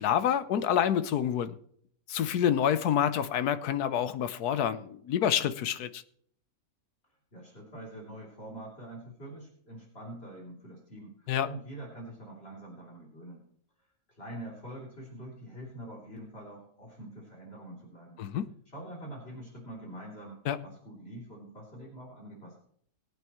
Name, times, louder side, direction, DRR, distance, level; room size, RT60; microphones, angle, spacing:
voice 1, 0.0-1.6 2.1-6.0 11.3-11.5 18.2-18.5 20.5-20.6, left 9 dB, 90° left, 1.3 m, -27 dB
voice 2, 7.3-13.4 14.1-18.2 18.7-22.6, right 1 dB, 40° left, 3.4 m, -45 dB
21.0 x 8.9 x 3.1 m
omnidirectional pair, 1.6 m